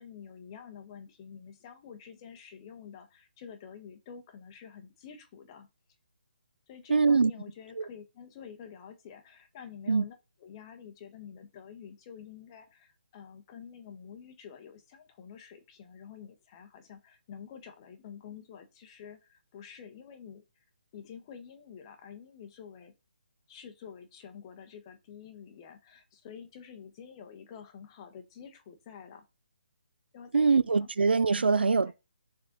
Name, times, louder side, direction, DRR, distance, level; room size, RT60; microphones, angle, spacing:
voice 1, 0.0-5.7 6.7-20.4 20.9-22.9 23.5-29.2 30.1-30.9 31.8-31.9, left 7 dB, 30° left, 1.2 m, -48 dB
voice 2, 6.9-7.3 7.8-7.9 9.9-10.0 30.3-31.9, right 4 dB, 85° right, 0.4 m, -23 dB
6.5 x 3.9 x 3.9 m
hypercardioid pair, 155°, 5 cm